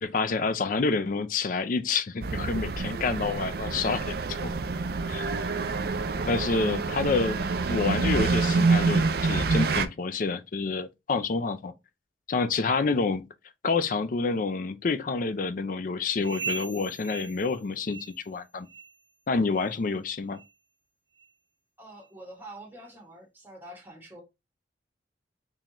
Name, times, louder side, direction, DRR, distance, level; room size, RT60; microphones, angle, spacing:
voice 1, 0.0-4.5 5.1-5.3 6.3-7.4 7.7-11.7 12.3-13.3 13.6-18.0 18.3-18.7 19.3-20.4, left 4 dB, 45° left, 0.4 m, -28 dB
sound 1, 2.2-9.9, right 4 dB, 55° right, 0.4 m, -27 dB
sound 2, 16.2-18.4 18.7-19.0 19.5-19.7 20.3-20.5 21.2-21.3 22.0-22.1, right 5 dB, 85° right, 1.0 m, -39 dB
voice 2, 21.8-24.2, right 1 dB, 10° right, 1.4 m, -46 dB
3.8 x 3.2 x 3.0 m
head